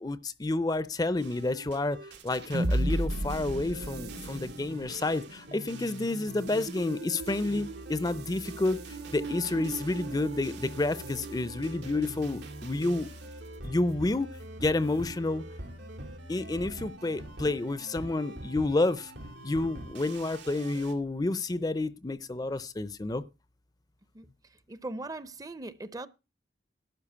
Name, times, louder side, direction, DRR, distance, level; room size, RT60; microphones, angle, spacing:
voice 1, 0.0-2.0 2.2-8.8 9.1-13.1 13.6-15.4 16.3-19.1 19.4-23.2, left 2 dB, 20° left, 0.5 m, -30 dB
sound 1, 1.2-20.9, right 1 dB, 90° right, 2.4 m, -44 dB
sound 2, 2.1-12.6, right 1 dB, 65° right, 1.1 m, -36 dB
voice 2, 24.7-26.1, right 2 dB, 20° right, 0.6 m, -39 dB
12.0 x 4.9 x 8.6 m
head